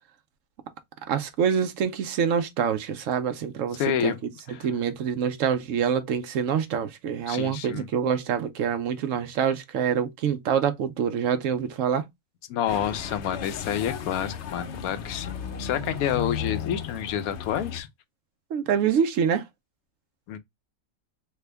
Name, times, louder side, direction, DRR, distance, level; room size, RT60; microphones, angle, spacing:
voice 1, 1.1-4.1 4.6-12.0 18.5-19.4, right 7 dB, 70° right, 0.9 m, -26 dB
voice 2, 3.8-4.2 4.5-4.7 7.3-7.9 12.5-17.9 20.3-20.4, left 9 dB, 85° left, 1.1 m, -29 dB
sound 1, 12.7-17.8, left 7 dB, 65° left, 0.8 m, -35 dB
3.4 x 2.2 x 3.3 m
omnidirectional pair, 1.5 m